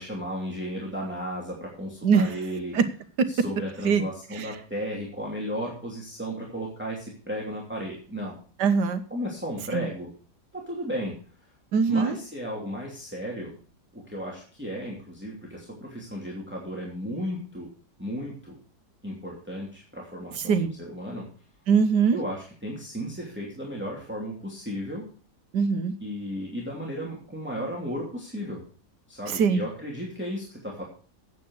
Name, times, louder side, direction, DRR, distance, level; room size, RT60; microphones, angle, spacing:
voice 1, 0.0-2.8 3.3-8.4 9.1-10.1 10.5-11.2 11.9-13.6 13.9-17.7 18.0-18.6 19.0-21.3 22.1-25.1 26.0-28.6 29.1-30.8, equal, 5° right, -3 dB, 2.7 m, -34 dB
voice 2, 8.6-9.0 9.7-9.9 11.7-12.2 20.5-20.7 21.7-22.2 25.5-25.9 29.3-29.6, right 6 dB, 90° right, 10 dB, 1.7 m, -21 dB
9.6 x 8.2 x 6.3 m, 0.42 s
omnidirectional pair, 1.8 m